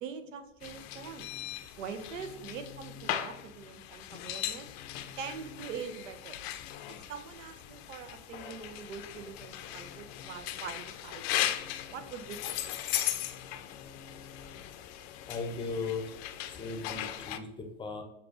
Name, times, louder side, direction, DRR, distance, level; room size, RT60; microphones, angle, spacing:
voice 1, 0.0-1.3 1.8-4.7 5.2-6.4 7.1-11.5 11.9-12.6, right 6 dB, 80° right, 10 dB, 0.6 m, -43 dB
sound 1, 0.6-17.4, left 12 dB, 55° left, 0.5 m, -38 dB
voice 2, 15.3-16.1 16.5-18.0, left 4 dB, 15° left, 3 dB, 0.6 m, -37 dB
6.6 x 2.4 x 2.5 m, 0.90 s
hypercardioid pair, 95°, 37 cm